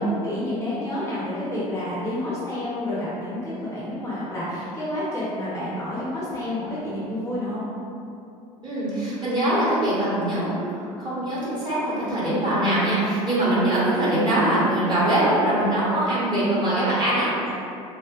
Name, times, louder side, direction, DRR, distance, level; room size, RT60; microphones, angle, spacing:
voice 1, 0.0-7.6 17.4-17.5, left 1 dB, 15° left, -10 dB, 0.9 m, -29 dB
voice 2, 8.6-17.5, right 1 dB, 25° right, -9 dB, 1.5 m, -22 dB
3.3 x 2.6 x 2.5 m, 2.6 s
hypercardioid pair, 70°, 18 cm